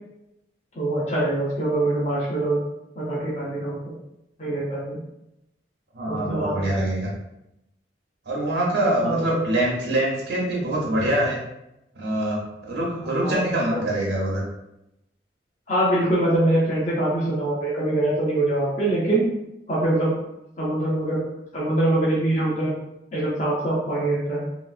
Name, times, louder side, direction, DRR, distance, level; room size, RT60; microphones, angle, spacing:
voice 1, 0.7-2.6 3.0-3.9 4.4-5.0 6.1-6.6 9.0-9.4 13.0-13.4 13.7-13.8 15.7-19.2 19.7-20.1 20.6-21.2 21.5-22.7 23.1-24.5, right 1 dB, 40° left, -6 dB, 0.7 m, -23 dB
voice 2, 5.9-7.1 8.3-11.4 11.9-14.4, right 1 dB, 80° right, -4 dB, 0.8 m, -24 dB
3.1 x 2.9 x 2.4 m, 0.87 s
head